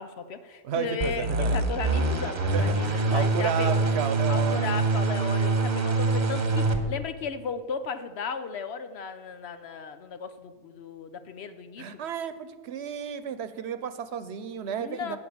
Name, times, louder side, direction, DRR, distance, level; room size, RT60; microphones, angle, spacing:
voice 1, 0.0-3.9 4.3-12.0 14.8-15.2, left 5 dB, 70° left, 10 dB, 1.0 m, -35 dB
voice 2, 0.6-1.6 2.5-4.8 11.8-15.2, right 8 dB, 75° right, 12 dB, 1.0 m, -32 dB
sound 1, 1.0-6.8, right 3 dB, 45° right, 1.1 m, -25 dB
11.0 x 5.9 x 8.6 m, 1.4 s
omnidirectional pair, 1.1 m